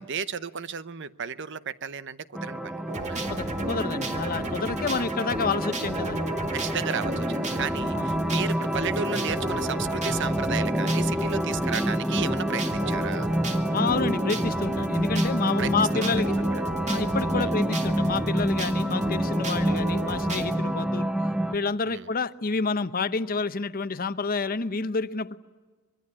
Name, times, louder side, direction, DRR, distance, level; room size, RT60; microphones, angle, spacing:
voice 1, 0.0-3.2 4.4-4.7 6.5-13.3 15.6-16.1 17.3-17.6 19.5-19.8 21.9-22.1, right 6 dB, 60° right, 0.8 m, -34 dB
sound 1, 2.3-21.5, equal, 5° right, 0.8 m, -28 dB
sound 2, 2.9-20.6, right 1 dB, 35° right, 2.0 m, -34 dB
voice 2, 3.3-6.2 7.9-8.0 13.7-16.4 16.8-21.1 21.5-25.4, left 4 dB, 45° left, 0.8 m, -29 dB
24.5 x 22.0 x 9.8 m
head